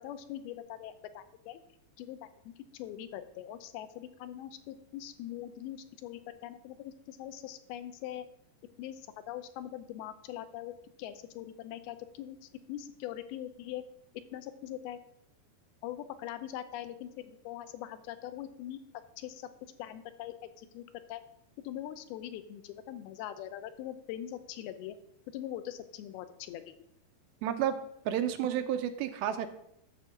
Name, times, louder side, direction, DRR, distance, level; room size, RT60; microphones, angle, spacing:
voice 1, 0.0-1.6 2.0-8.3 8.8-13.8 14.3-15.0 15.8-18.8 19.2-19.5 19.8-21.2 21.6-25.0 25.3-26.6, left 12 dB, 90° left, 11 dB, 2.6 m, -42 dB
voice 2, 27.4-27.8 28.1-29.5, right 10 dB, 80° right, 8 dB, 2.5 m, -31 dB
11.0 x 3.8 x 7.1 m, 0.75 s
omnidirectional pair, 4.4 m